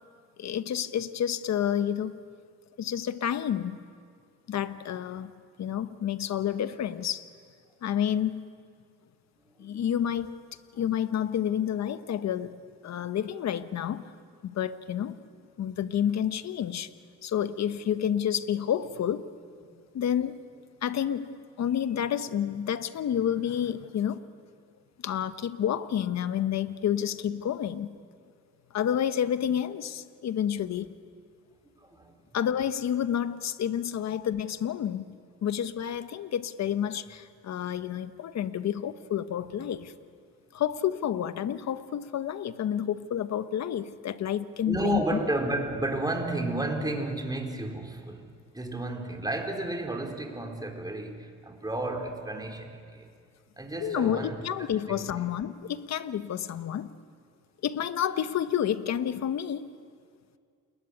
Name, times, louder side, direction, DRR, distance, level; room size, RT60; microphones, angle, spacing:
voice 1, 0.4-2.2 2.8-3.8 4.5-5.3 5.6-7.3 7.8-8.5 9.6-10.3 10.7-14.1 14.4-15.2 15.6-16.9 17.2-19.2 19.9-20.4 20.8-24.2 25.0-28.0 28.7-30.9 32.3-39.9 40.5-45.0 53.8-56.9 57.6-59.7, left 9 dB, 60° left, 1.2 m, -29 dB
voice 2, 9.4-9.8 29.4-29.5 30.5-30.8 31.8-32.1 39.4-39.7 44.6-53.1 53.6-55.3, right 2 dB, 15° right, 4.2 m, -33 dB
28.5 x 21.0 x 9.7 m
cardioid pair, 90°, 30 cm